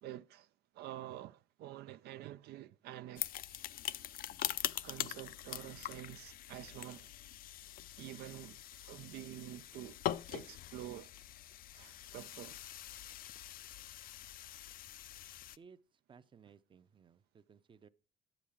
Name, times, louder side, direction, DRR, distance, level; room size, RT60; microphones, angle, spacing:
voice 1, 0.0-3.3 4.8-7.1 8.0-10.0 10.3-11.1 11.7-12.6, right 13 dB, 75° right, 0.4 m, -48 dB
sound 1, 3.2-15.6, left 12 dB, 60° left, 0.4 m, -43 dB
voice 2, 15.6-17.9, right 6 dB, 30° right, 0.6 m, -60 dB
10.0 x 7.3 x 4.9 m
cardioid pair, 110°, 17 cm